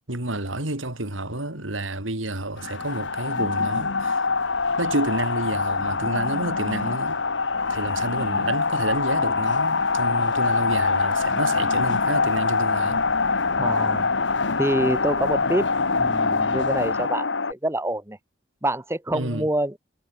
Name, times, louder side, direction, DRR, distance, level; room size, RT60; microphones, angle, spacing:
voice 1, 0.0-4.3 4.8-7.2 7.7-13.0 19.1-19.5, right 2 dB, 80° right, 3.9 m, -30 dB
sound 1, 2.6-17.5, left 4 dB, 65° left, 1.3 m, -24 dB
voice 2, 13.6-14.1 14.6-15.7 16.0-18.2 18.6-19.8, right 1 dB, 15° right, 2.2 m, -26 dB
head